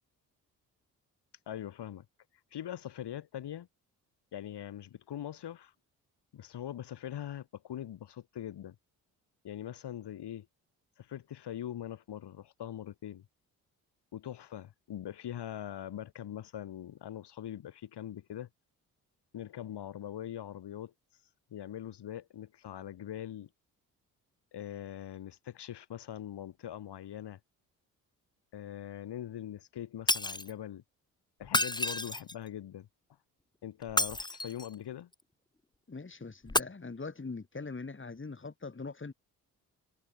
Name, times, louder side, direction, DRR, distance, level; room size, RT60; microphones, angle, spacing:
voice 1, 1.5-2.1 2.5-3.7 4.3-5.7 6.3-8.8 9.4-10.5 11.0-13.3 14.1-18.5 19.3-20.9 21.5-23.5 24.5-27.4 28.5-30.8 31.4-32.9 33.6-35.1, left 11 dB, 65° left, 7.2 m, -42 dB
Shatter, 30.1-30.5 31.4-32.5 33.8-34.7 36.5-36.6, left 2 dB, 10° left, 1.6 m, -30 dB
voice 2, 35.9-39.1, left 4 dB, 25° left, 4.3 m, -42 dB
hypercardioid pair, 45°, 43 cm